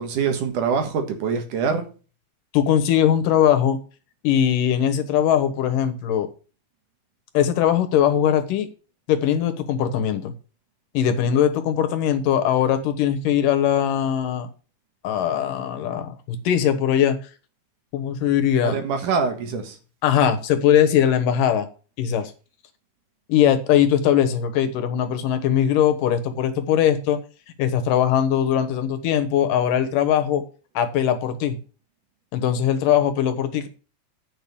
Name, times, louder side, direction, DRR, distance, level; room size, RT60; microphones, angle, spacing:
voice 1, 0.0-1.9 18.7-19.8, right 5 dB, 75° right, 3.1 m, -24 dB
voice 2, 2.5-3.8 4.2-6.3 7.3-8.7 9.1-10.3 10.9-14.5 15.0-17.2 17.9-18.8 20.0-21.7 22.0-22.3 23.3-27.2 27.6-30.5 30.7-31.6 32.3-33.7, left 9 dB, 90° left, 2.9 m, -20 dB
9.1 x 6.2 x 7.0 m
omnidirectional pair, 3.7 m